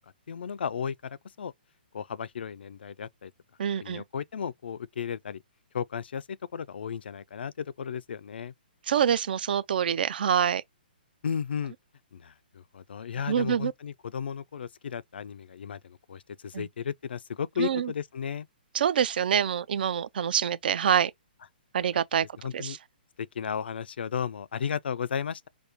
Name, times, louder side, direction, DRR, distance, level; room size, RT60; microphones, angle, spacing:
voice 1, 0.3-1.5 1.9-3.3 3.8-5.4 5.7-8.5 11.2-11.7 12.1-18.5 22.2-22.8 23.2-25.5, left 7 dB, 80° left, 0.4 m, -34 dB
voice 2, 3.6-4.0 8.9-10.6 13.3-13.7 16.5-16.7 17.6-17.9 18.7-21.1 21.7-22.3 22.5-22.8, right 8 dB, 65° right, 0.4 m, -26 dB
5.0 x 2.1 x 2.9 m
hypercardioid pair, 155°, 5 cm